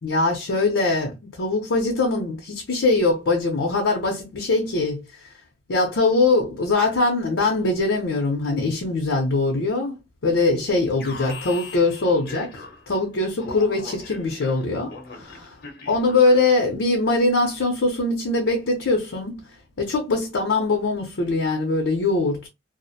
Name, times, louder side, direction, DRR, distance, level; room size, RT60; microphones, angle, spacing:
voice 1, 0.0-5.0 5.7-9.9 10.2-14.9 15.9-19.4 19.8-22.5, left 3 dB, 90° left, 0.6 m, -22 dB
Alarm, 11.0-13.0 13.4-16.6, left 4 dB, 55° left, 0.7 m, -40 dB
2.4 x 2.0 x 2.6 m
head